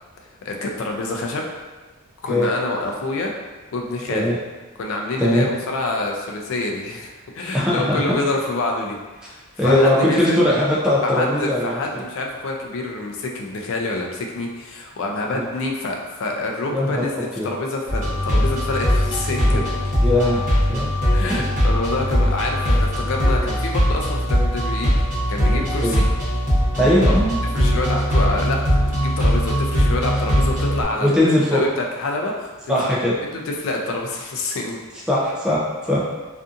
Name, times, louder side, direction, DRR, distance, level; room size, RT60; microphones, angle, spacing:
voice 1, 0.4-1.5 2.2-3.3 3.7-4.3 4.8-7.1 7.3-9.0 9.2-10.4 11.0-19.7 21.1-24.9 25.3-26.0 26.8-26.9 27.5-31.2 31.5-32.9 33.2-34.8, left 2 dB, 60° left, 1 dB, 0.4 m, -27 dB
voice 2, 7.5-8.2 9.6-11.8 15.3-15.4 16.7-17.1 17.4-17.5 19.5-19.6 20.0-20.4 20.7-20.9 21.3-21.4 25.8-26.0 26.8-27.4 31.0-31.6 32.7-33.2 35.1-35.6 35.9-36.0, left 1 dB, 5° right, -7 dB, 0.4 m, -19 dB
sound 1, 17.9-30.8, equal, 35° right, 0.9 m, -20 dB
2.6 x 2.4 x 2.4 m, 1.3 s
head